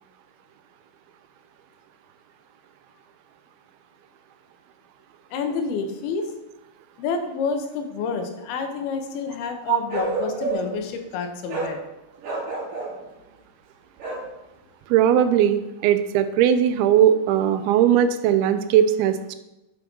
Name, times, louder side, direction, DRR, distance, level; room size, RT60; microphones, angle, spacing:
voice 1, 5.3-6.3 7.0-11.8, left 5 dB, 90° left, 5 dB, 2.9 m, -28 dB
Bark, 9.9-10.8 11.5-11.8 12.2-13.0 14.0-14.3, right 3 dB, 65° right, 3.6 m, -29 dB
voice 2, 14.9-19.4, right 10 dB, 90° right, 11 dB, 2.5 m, -19 dB
7.5 x 5.9 x 5.3 m, 0.95 s
omnidirectional pair, 4.3 m